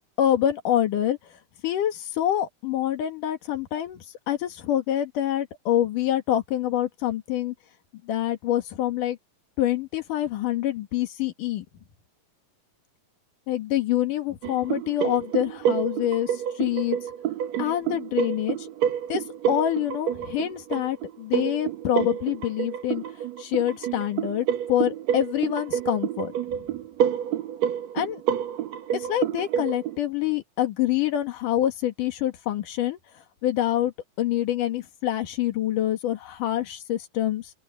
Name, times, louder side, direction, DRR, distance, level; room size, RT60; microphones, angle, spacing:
voice 1, 0.2-1.2 1.6-7.5 8.0-9.2 9.6-11.6 13.5-17.0 17.6-18.7 19.1-23.0 23.4-26.7 27.9-28.2 28.9-33.0 33.4-33.9 34.2-37.5, left 12 dB, 70° left, 3.1 m, -26 dB
sound 1, 14.4-30.0, right 9 dB, 65° right, 2.0 m, -28 dB
open air
omnidirectional pair, 4.0 m